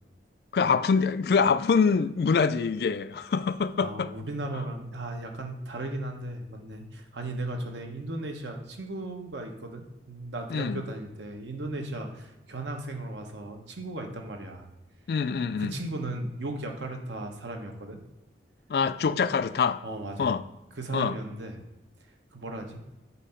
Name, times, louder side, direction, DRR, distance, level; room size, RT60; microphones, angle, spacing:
voice 1, 0.5-4.1 10.5-10.8 15.1-15.7 18.7-19.8 20.2-20.4 20.9-21.2, left 5 dB, 60° left, 0.3 m, -25 dB
voice 2, 3.8-14.7 15.6-18.0 19.8-20.4 20.8-21.6 22.3-22.8, right 2 dB, 90° right, 1.1 m, -36 dB
8.2 x 2.8 x 5.6 m
head